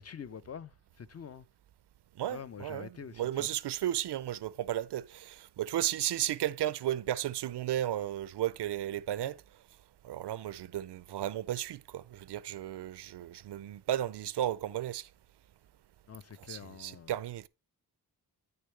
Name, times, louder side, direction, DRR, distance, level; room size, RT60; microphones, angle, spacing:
voice 1, 0.0-1.5 2.3-3.5 16.1-17.1, left 7 dB, 40° left, 0.4 m, -46 dB
voice 2, 2.2-2.9 3.2-9.4 10.0-15.1 16.4-17.5, right 12 dB, 80° right, 0.5 m, -34 dB
8.9 x 6.6 x 3.2 m
wide cardioid pair, 175°, 40 cm